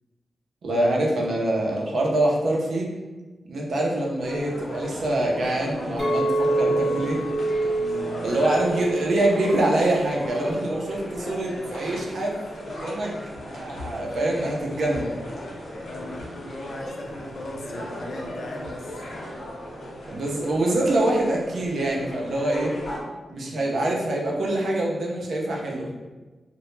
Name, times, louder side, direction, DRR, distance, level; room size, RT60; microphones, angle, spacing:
voice 1, 0.6-2.9 3.5-7.2 8.2-13.1 13.5-15.1 20.0-22.8 23.3-25.9, right 1 dB, 65° right, -2 dB, 0.4 m, -25 dB
sound 1, 4.2-23.0, equal, 80° left, 0.7 m, -36 dB
Chink clink, 6.0-10.3 10.7-11.1, right 2 dB, 5° right, 0.7 m, -27 dB
voice 2, 7.7-8.2 15.8-19.0 23.3-23.7, left 1 dB, 55° left, 1 dB, 0.3 m, -39 dB
2.1 x 2.0 x 3.0 m, 1.2 s
wide cardioid pair, 155°, 0 cm